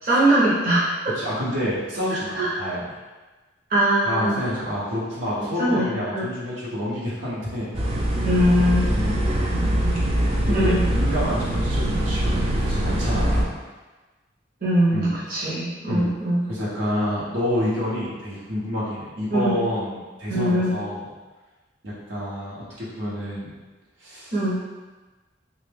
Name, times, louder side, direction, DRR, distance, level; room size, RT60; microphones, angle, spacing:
voice 1, 0.0-0.8 2.3-2.5 3.7-4.4 5.4-6.3 8.2-8.9 10.5-10.8 14.6-16.4 19.3-19.6 20.3-20.8 24.3-24.6, right 1 dB, 50° right, -9 dB, 0.9 m, -21 dB
voice 2, 1.1-2.9 4.0-7.7 8.8-9.2 10.4-13.5 14.9-15.4 15.9-16.1 16.5-21.1 21.8-23.5 24.0-24.4, left 1 dB, 80° right, -7 dB, 1.1 m, -28 dB
sound 1, 7.7-13.4, right 1 dB, 30° right, 0.4 m, -23 dB
3.3 x 2.5 x 3.5 m, 1.2 s
head